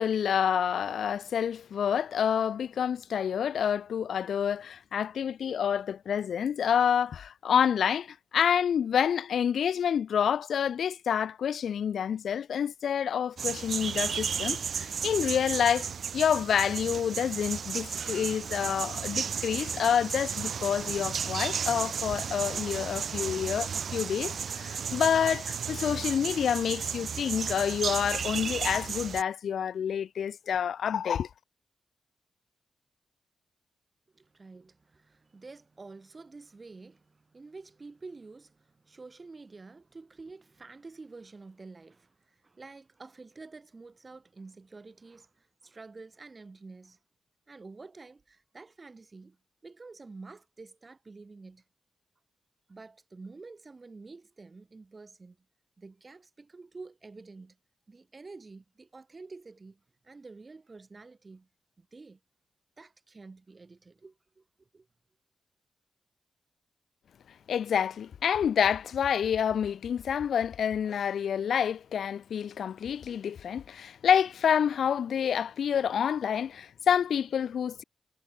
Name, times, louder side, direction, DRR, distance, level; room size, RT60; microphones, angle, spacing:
voice 1, 0.0-31.3 67.5-77.8, left 8 dB, 75° left, 0.4 m, -28 dB
sound 1, 13.4-29.2, right 7 dB, 70° right, 1.6 m, -34 dB
voice 2, 34.1-47.0 47.5-49.4 49.6-51.6 52.7-55.4 55.8-57.6 57.9-61.5 61.8-62.2 62.8-64.9, right 3 dB, 40° right, 5.9 m, -49 dB
supercardioid pair, 45°, 0 cm